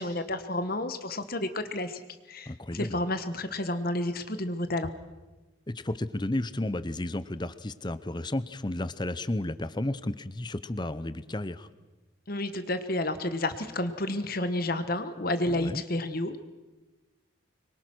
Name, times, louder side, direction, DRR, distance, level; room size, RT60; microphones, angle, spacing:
voice 1, 0.0-2.0 2.3-4.9 12.3-16.4, left 1 dB, 45° left, 10 dB, 1.3 m, -30 dB
voice 2, 2.5-3.0 5.7-11.7 15.5-15.8, left 1 dB, 20° left, 14 dB, 0.8 m, -32 dB
25.5 x 23.0 x 6.2 m, 1.2 s
head